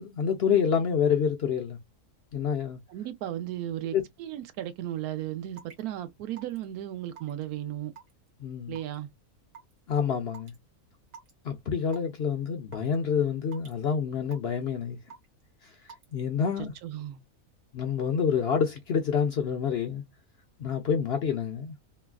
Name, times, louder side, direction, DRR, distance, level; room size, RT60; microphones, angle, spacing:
voice 1, 0.0-1.8 2.3-2.8 3.9-4.0 8.4-8.8 9.9-10.5 11.4-15.0 15.6-15.7 16.1-16.7 17.7-20.0 20.6-21.8, left 7 dB, 65° left, 0.6 m, -27 dB
voice 2, 2.9-7.9 8.7-9.1 16.6-17.2, right 12 dB, 90° right, 1.1 m, -35 dB
Raindrop / Water tap faucet / Drip, 5.6-5.8 6.4-6.6 7.2-7.4 8.0-8.3 8.8-9.0 9.5-9.7 10.3-10.6 11.1-11.3 11.9-12.2 12.7-13.0 13.5-13.8 14.3-14.6 15.1-15.4 15.9-16.1, right 6 dB, 65° right, 1.6 m, -47 dB
3.0 x 2.3 x 2.3 m
omnidirectional pair, 1.6 m